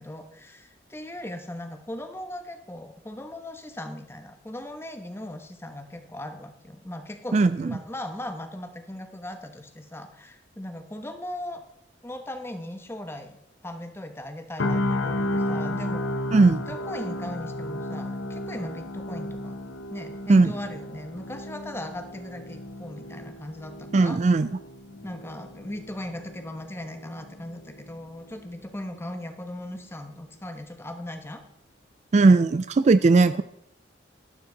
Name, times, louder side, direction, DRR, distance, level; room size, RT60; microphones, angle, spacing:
voice 1, 0.0-11.6 12.0-13.4 13.6-16.0 16.4-19.6 19.9-24.2 24.9-31.4, left 1 dB, 15° left, 7 dB, 1.1 m, -38 dB
voice 2, 7.3-7.7 16.3-16.6 20.3-20.5 23.9-24.5 32.1-33.4, right 3 dB, 40° right, 13 dB, 0.3 m, -18 dB
sound 1, 14.6-28.6 28.9-29.2, left 1 dB, 85° left, 0.9 m, -33 dB
12.0 x 12.0 x 3.9 m, 0.76 s
head